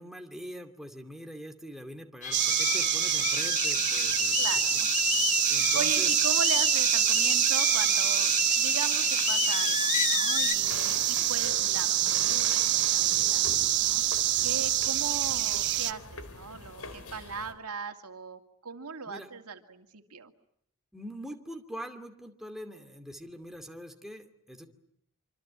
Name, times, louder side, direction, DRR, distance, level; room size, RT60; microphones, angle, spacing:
voice 1, 0.0-4.5 5.1-6.1 19.1-19.3 20.9-24.7, equal, ahead, 4 dB, 2.5 m, -43 dB
sound 1, 2.2-10.5, left 7 dB, 35° left, 1.9 m, -30 dB
sound 2, 2.3-15.9, right 13 dB, 50° right, 1.1 m, -26 dB
voice 2, 4.4-4.9 5.5-13.4 13.7-14.0 14.4-20.3, right 5 dB, 90° right, 6 dB, 2.4 m, -39 dB
sound 3, 10.6-17.5, left 3 dB, 80° left, 3.6 m, -43 dB
26.0 x 26.0 x 8.8 m, 0.73 s
head